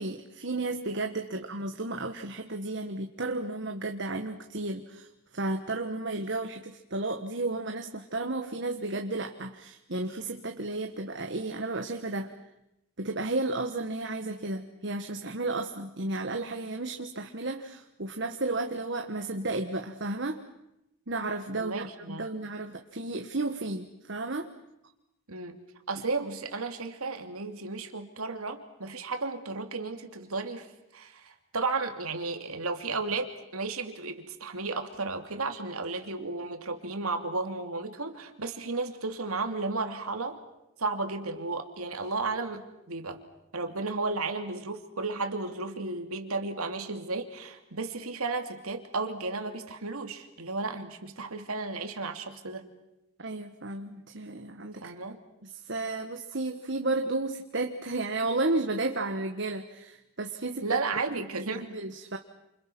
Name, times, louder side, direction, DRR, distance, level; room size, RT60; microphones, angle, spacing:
voice 1, 0.0-12.3 13.0-20.4 21.1-24.5 53.2-54.9 55.4-60.8 61.5-62.2, right 2 dB, 55° right, 5 dB, 1.5 m, -33 dB
voice 2, 21.6-22.3 25.3-25.6 25.9-30.7 30.9-40.4 40.8-43.2 43.5-52.7 54.8-55.2 60.6-61.8, right 3 dB, 80° right, 6 dB, 2.8 m, -33 dB
29.0 x 27.5 x 6.2 m, 0.88 s
head